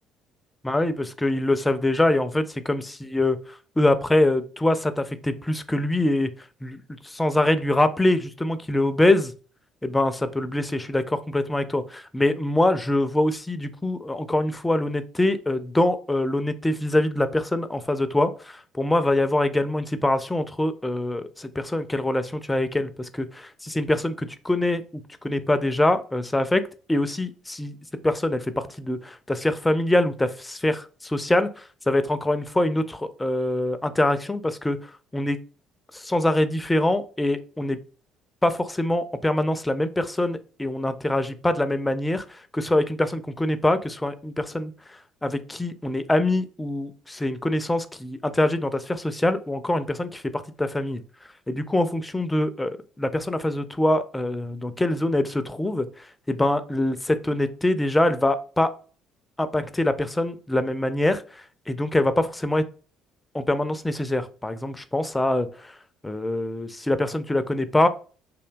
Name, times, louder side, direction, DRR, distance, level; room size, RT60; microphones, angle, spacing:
voice 1, 0.6-3.4 3.8-6.3 6.6-9.3 9.8-26.6 26.9-27.8 28.0-34.8 35.1-35.4 35.9-37.8 38.4-44.7 45.2-51.0 51.5-52.7 53.0-58.7 59.4-61.2 61.7-62.6 63.3-65.7 66.0-67.9, left 1 dB, 15° left, 11 dB, 0.4 m, -24 dB
2.7 x 2.2 x 2.5 m, 0.37 s
hypercardioid pair, 55°, 0 cm